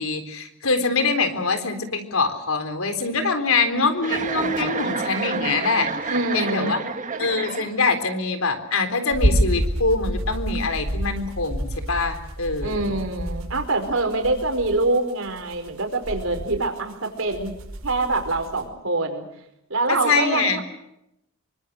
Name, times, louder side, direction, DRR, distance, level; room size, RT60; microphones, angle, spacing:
voice 1, 0.0-6.8 7.2-13.0 19.9-20.6, left 3 dB, 80° left, 8 dB, 3.8 m, -24 dB
Chuckle chortle, 4.0-8.0, right 4 dB, 40° right, 1.5 m, -29 dB
voice 2, 6.1-6.8 12.6-17.5 17.8-19.2 19.7-20.6, right 2 dB, 70° right, 6 dB, 4.9 m, -25 dB
sound 1, 9.1-18.7, equal, 90° right, 5.5 m, -28 dB
27.5 x 24.5 x 6.7 m, 0.83 s
head